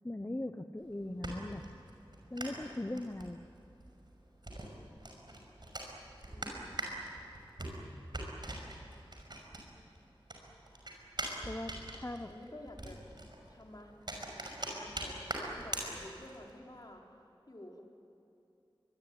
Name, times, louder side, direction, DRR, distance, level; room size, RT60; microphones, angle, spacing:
voice 1, 0.0-1.6 2.3-3.4 11.4-12.3, left 1 dB, 25° left, 7 dB, 0.9 m, -39 dB
sound 1, 0.8-10.0 10.3-16.5, right 1 dB, 55° right, 5.9 m, -43 dB
voice 2, 6.3-6.9 12.2-13.0 13.5-13.9 14.7-17.0 17.5-17.8, left 1 dB, 45° left, 0 dB, 4.4 m, -51 dB
24.5 x 22.0 x 9.8 m, 2.8 s
wide cardioid pair, 55°, 9 cm